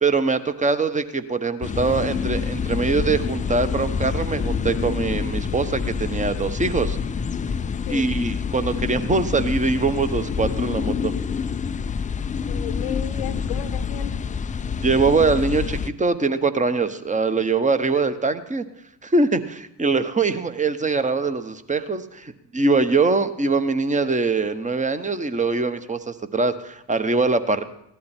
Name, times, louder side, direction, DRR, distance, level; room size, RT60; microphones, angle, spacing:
voice 1, 0.0-7.0 7.9-11.1 14.8-18.6 19.0-27.6, right 4 dB, 15° right, 10 dB, 1.1 m, -23 dB
sound 1, 1.6-15.9, left 6 dB, 15° left, 0.4 m, -27 dB
voice 2, 12.5-14.2, left 11 dB, 70° left, 7 dB, 0.9 m, -34 dB
17.0 x 11.5 x 4.4 m, 0.76 s
figure-of-eight pair, 50°, 50 cm